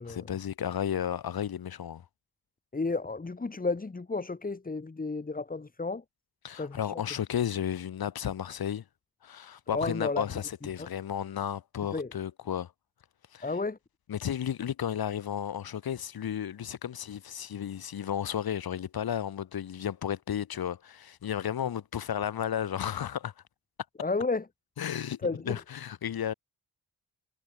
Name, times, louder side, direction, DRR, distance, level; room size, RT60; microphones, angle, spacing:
voice 1, 0.1-2.0 6.4-8.8 9.2-12.7 13.3-13.5 14.1-23.3 24.8-25.2 25.4-26.3, left 9 dB, 75° left, 3.2 m, -33 dB
voice 2, 2.7-6.0 6.6-7.0 9.7-10.2 11.9-12.1 13.4-13.8 24.0-24.4 25.2-25.5, left 3 dB, 25° left, 3.7 m, -32 dB
wide cardioid pair, 150°, 36 cm